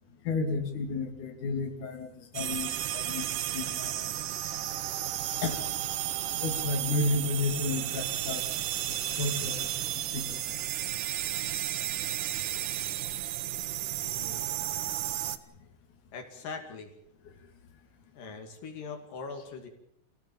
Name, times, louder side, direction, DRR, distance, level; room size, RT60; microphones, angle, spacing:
voice 1, 0.3-3.3 3.5-3.9 5.4-5.6 6.4-9.7 10.1-10.3 14.0-14.3, left 3 dB, 70° left, 3 dB, 4.0 m, -32 dB
sound 1, 2.3-15.4, right 12 dB, 75° right, 2.5 m, -33 dB
voice 2, 14.1-14.5 16.1-16.9 18.1-19.7, left 4 dB, 85° left, 4 dB, 4.1 m, -41 dB
27.5 x 17.0 x 7.3 m, 0.74 s
omnidirectional pair, 3.7 m